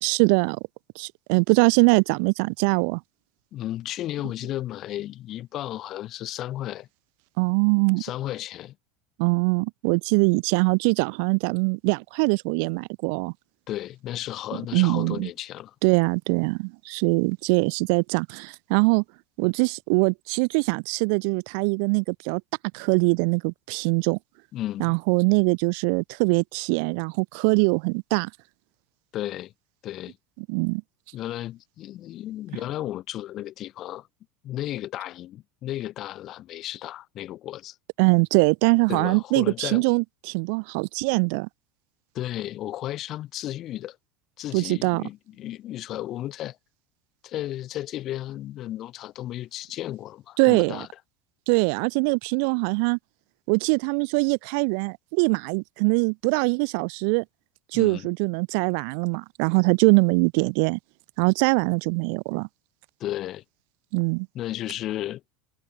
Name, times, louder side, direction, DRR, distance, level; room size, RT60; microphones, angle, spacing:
voice 1, 0.0-0.6 1.0-3.0 7.4-8.0 9.2-13.3 14.7-15.3 15.8-19.0 19.4-22.4 22.7-24.2 24.8-28.3 30.5-30.8 38.0-41.5 44.5-45.0 50.4-50.8 51.5-53.0 53.5-57.2 57.7-60.8 61.2-62.5 63.9-64.3, right 38 dB, 65° right, 4.1 m, -22 dB
voice 2, 3.5-6.9 8.0-8.7 13.7-15.7 24.5-25.0 29.1-29.5 29.8-30.2 31.1-34.1 34.4-37.8 38.9-39.8 42.1-44.0 44.4-46.6 47.2-50.9 57.7-58.1 63.0-63.4 64.3-65.2, left 13 dB, 35° left, 3.9 m, -34 dB
supercardioid pair, 160°, 0 cm